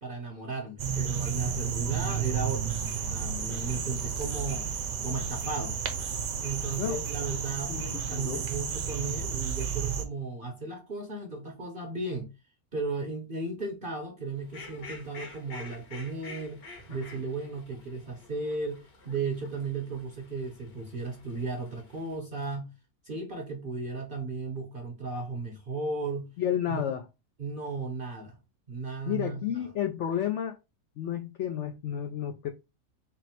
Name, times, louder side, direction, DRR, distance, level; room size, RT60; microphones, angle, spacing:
voice 1, 0.0-2.8 3.1-4.6 5.0-5.8 6.4-12.3 12.7-22.7 23.0-26.3 26.7-26.8 27.4-28.4 28.7-29.5, right 3 dB, 50° right, 0.7 m, -35 dB
sound 1, 0.8-10.0, right 7 dB, 65° right, 1.1 m, -32 dB
voice 2, 7.7-8.4 26.4-27.1 29.1-30.6 31.0-32.5, left 10 dB, 80° left, 0.6 m, -31 dB
Fowl, 14.4-22.2, left 3 dB, 60° left, 1.6 m, -49 dB
4.0 x 2.1 x 4.2 m
omnidirectional pair, 1.8 m